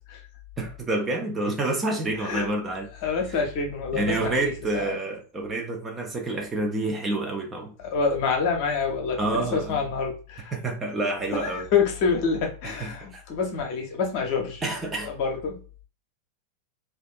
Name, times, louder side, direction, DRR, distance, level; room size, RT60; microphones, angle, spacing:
voice 1, 0.6-2.9 3.9-7.7 9.2-9.8 10.5-11.7 12.8-13.2 14.6-15.1, right 2 dB, 15° right, 0.5 m, -28 dB
voice 2, 3.0-5.0 7.8-10.5 11.4-14.6 15.0-15.6, left 5 dB, 45° left, 0.7 m, -27 dB
2.5 x 2.3 x 2.4 m
figure-of-eight pair, 90°, 0 cm